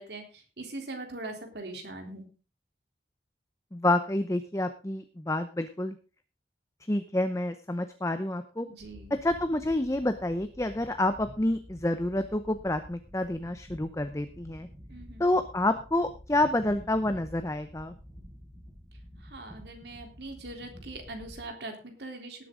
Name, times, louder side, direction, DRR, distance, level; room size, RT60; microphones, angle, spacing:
voice 1, 0.0-2.3 8.6-9.2 14.9-15.2 19.2-22.5, right 2 dB, 75° right, 3 dB, 3.5 m, -41 dB
voice 2, 3.7-6.0 6.9-8.7 9.2-14.7 15.2-17.9, left 1 dB, 15° left, 9 dB, 0.7 m, -28 dB
sound 1, 8.8-21.4, equal, 15° right, 4.2 m, -49 dB
18.5 x 8.5 x 3.8 m, 0.34 s
head